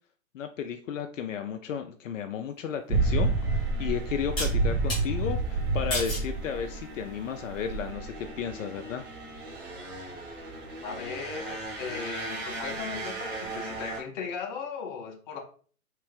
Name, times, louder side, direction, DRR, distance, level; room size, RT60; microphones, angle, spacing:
voice 1, 0.3-9.0, left 8 dB, 70° left, 6 dB, 0.5 m, -34 dB
sound 1, 2.9-14.0, right 3 dB, 50° right, 1.6 m, -31 dB
sound 2, 3.0-3.1 4.4-5.0 5.9-6.3 6.9-7.4, left 1 dB, 10° left, 0.3 m, -32 dB
voice 2, 10.8-15.4, left 5 dB, 35° left, 3 dB, 0.8 m, -37 dB
3.3 x 3.2 x 3.2 m, 0.43 s
hypercardioid pair, 130°, 41 cm